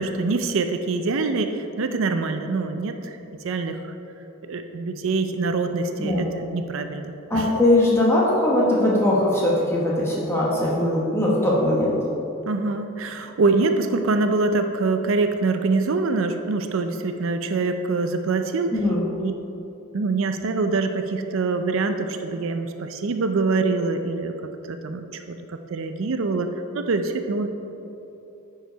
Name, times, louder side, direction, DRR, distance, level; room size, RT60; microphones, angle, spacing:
voice 1, 0.0-3.2 3.4-3.9 4.5-7.5 12.4-18.8 19.2-19.3 19.9-24.3 24.6-27.5, right 3 dB, 60° right, 7 dB, 0.4 m, -25 dB
voice 2, 7.3-12.0 18.7-19.1, left 1 dB, 10° left, -5 dB, 1.1 m, -20 dB
10.0 x 4.8 x 4.5 m, 3.0 s
head